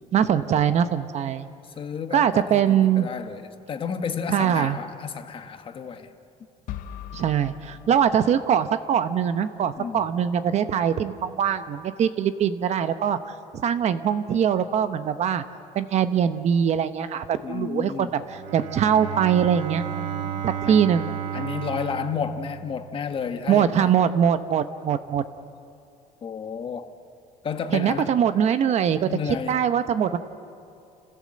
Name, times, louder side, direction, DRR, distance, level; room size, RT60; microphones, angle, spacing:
voice 1, 0.1-1.5 2.1-3.1 4.3-4.8 7.1-15.4 15.7-21.1 23.5-25.2 27.7-29.1 29.5-30.2, right 8 dB, 45° right, 11 dB, 0.9 m, -22 dB
voice 2, 1.8-6.1 9.8-10.1 17.4-18.1 20.7-20.8 21.3-23.9 26.2-26.9 27.4-28.1 29.0-29.6, left 6 dB, 35° left, 8 dB, 1.2 m, -31 dB
sound 1, 6.7-8.7, left 10 dB, 60° left, 0.9 m, -40 dB
Bowed string instrument, 18.2-23.2, right 9 dB, 75° right, 2.3 m, -33 dB
30.0 x 16.0 x 7.6 m, 2.6 s
cardioid pair, 145°, 15 cm